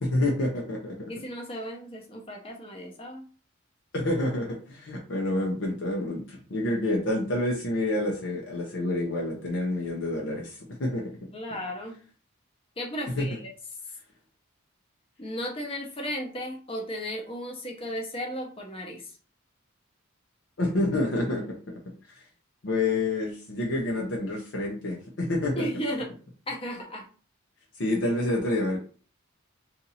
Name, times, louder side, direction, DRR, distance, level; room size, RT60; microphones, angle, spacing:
voice 1, 0.0-1.0 3.9-11.0 13.2-13.4 20.6-21.6 22.6-25.7 27.8-28.8, left 2 dB, 60° left, -1 dB, 0.7 m, -28 dB
voice 2, 1.1-3.3 11.3-11.9 12.8-13.5 15.2-19.1 25.5-26.1 26.5-27.0, equal, 25° left, 1 dB, 0.8 m, -35 dB
2.8 x 2.6 x 4.0 m, 0.39 s
head